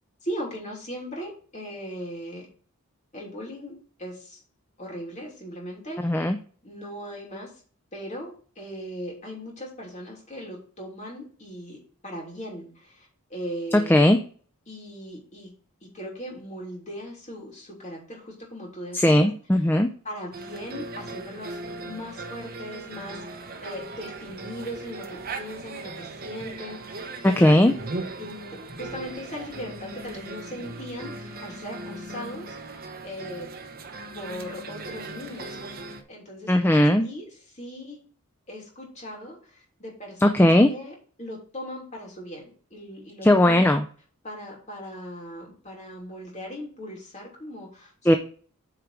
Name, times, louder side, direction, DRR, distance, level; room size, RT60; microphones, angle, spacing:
voice 1, 0.2-2.5 3.1-4.4 4.8-6.0 6.6-7.5 7.9-14.1 14.7-15.5 15.8-19.3 20.0-21.6 21.8-27.8 28.2-32.8 33.0-33.5 34.1-35.6 36.1-36.5 37.0-38.0 38.5-43.7 44.2-48.2, equal, 30° left, -2 dB, 3.0 m, -39 dB
voice 2, 6.0-6.4 13.9-14.2 18.9-19.9 27.2-27.7 36.5-37.0 40.2-40.7 43.2-43.8 48.1-48.2, left 1 dB, 10° left, 6 dB, 0.4 m, -18 dB
sound 1, 20.3-36.0, right 2 dB, 40° right, 1.0 m, -38 dB
8.8 x 4.5 x 4.8 m, 0.43 s
head